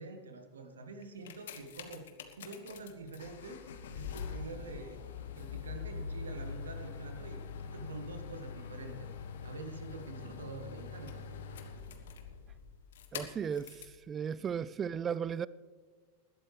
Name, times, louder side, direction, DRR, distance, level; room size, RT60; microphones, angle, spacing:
voice 1, 0.0-2.1 2.4-3.6 3.9-5.0 5.3-9.1 9.4-11.2 14.4-14.5, right 3 dB, 70° right, 1.5 m, -46 dB
sound 1, 1.0-14.0 14.7-14.8, left 6 dB, 60° left, 1.3 m, -44 dB
voice 2, 13.1-15.5, right 7 dB, 25° right, 0.4 m, -36 dB
20.5 x 12.0 x 3.3 m
figure-of-eight pair, 90°, 0 cm